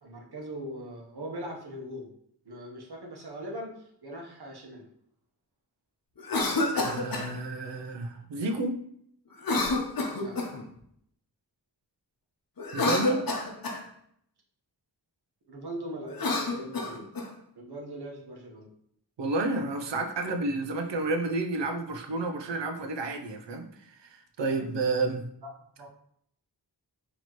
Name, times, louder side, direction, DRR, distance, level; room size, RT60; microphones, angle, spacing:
voice 1, 0.0-2.1 2.4-4.9 10.1-10.4 15.5-17.0 17.6-18.7 24.5-24.6 25.4-25.5 25.8-25.9, equal, 65° right, -1 dB, 1.0 m, -40 dB
Cough, 6.2-7.3 9.4-10.6 12.6-13.8 16.1-17.3, left 2 dB, 55° left, 0.8 m, -28 dB
voice 2, 6.8-8.8 12.7-13.2 19.2-23.7 24.0-25.3, right 3 dB, 90° right, 5 dB, 0.6 m, -30 dB
4.2 x 3.0 x 3.0 m, 0.69 s
wide cardioid pair, 70°, 42 cm